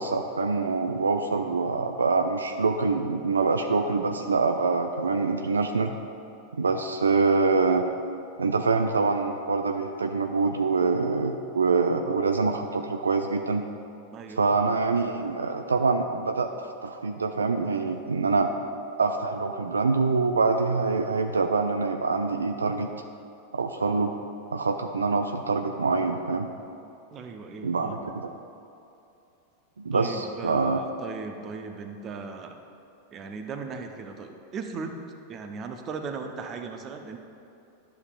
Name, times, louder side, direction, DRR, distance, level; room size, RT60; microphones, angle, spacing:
voice 1, 0.0-5.9 6.5-7.9 8.4-13.6 14.4-18.5 19.0-22.9 23.5-24.1 24.5-26.5 27.6-28.3 29.8-30.8, right 4 dB, 75° right, 6 dB, 0.3 m, -25 dB
voice 2, 14.1-14.4 27.1-28.1 29.9-32.6 33.1-35.0 35.3-37.2, right 4 dB, 30° right, 5 dB, 0.6 m, -37 dB
11.0 x 7.0 x 2.4 m, 2.7 s
figure-of-eight pair, 90°, 0 cm